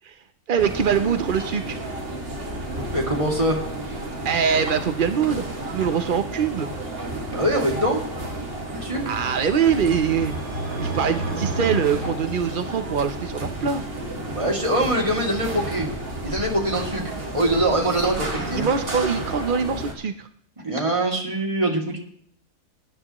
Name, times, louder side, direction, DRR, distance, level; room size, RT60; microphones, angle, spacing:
voice 1, 0.5-1.8 4.2-5.5 5.7-6.7 9.1-10.3 10.8-13.8 18.4-20.3, right 7 dB, 60° right, 9 dB, 0.5 m, -23 dB
sound 1, 0.6-19.9, right 1 dB, 35° right, 2.3 m, -32 dB
voice 2, 2.9-3.6 7.3-8.0 8.7-9.0 14.3-15.9 16.2-17.0 17.3-18.7 20.6-22.0, right 1 dB, 20° right, 0 dB, 2.4 m, -23 dB
sound 2, 8.7-13.0, right 2 dB, 75° right, 3.6 m, -32 dB
19.0 x 9.9 x 3.0 m, 0.65 s
omnidirectional pair, 1.7 m